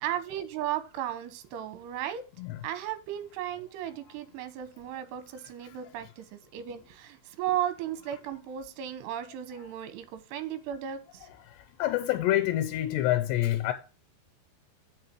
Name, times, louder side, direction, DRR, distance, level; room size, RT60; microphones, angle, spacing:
voice 1, 0.0-2.2 2.6-11.3, right 11 dB, 80° right, 3.1 m, -35 dB
voice 2, 11.8-13.7, left 14 dB, 90° left, 3.0 m, -26 dB
8.1 x 5.9 x 4.5 m
omnidirectional pair, 5.0 m